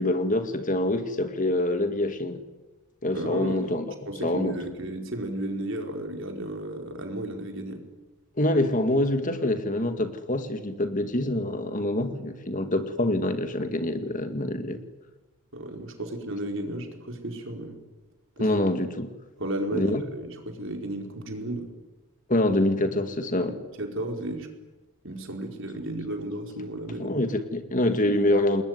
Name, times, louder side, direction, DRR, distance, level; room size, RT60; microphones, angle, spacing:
voice 1, 0.0-2.4 3.0-3.9 4.2-4.6 8.4-14.8 18.4-19.1 19.7-20.0 22.3-23.6 27.0-28.6, left 1 dB, 35° left, 8 dB, 2.0 m, -25 dB
voice 2, 3.1-3.8 4.1-7.8 15.5-17.8 18.4-18.5 19.4-21.7 23.8-24.5 25.0-27.2, right 1 dB, 55° right, 3 dB, 4.8 m, -33 dB
28.0 x 21.0 x 9.6 m, 1.1 s
head